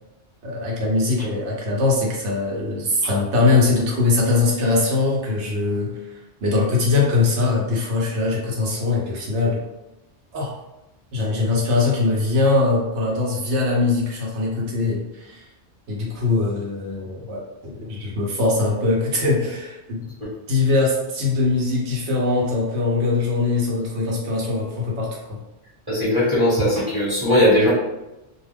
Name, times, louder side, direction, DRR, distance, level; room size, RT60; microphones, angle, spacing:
voice 1, 0.4-6.0 6.4-9.6 10.3-10.5 11.1-15.4 15.9-17.4 17.8-20.1 20.5-25.4, left 3 dB, 75° right, -3 dB, 1.0 m, -21 dB
voice 2, 25.9-27.7, left 1 dB, 20° right, -9 dB, 1.1 m, -19 dB
2.3 x 2.3 x 3.3 m, 0.98 s
omnidirectional pair, 1.2 m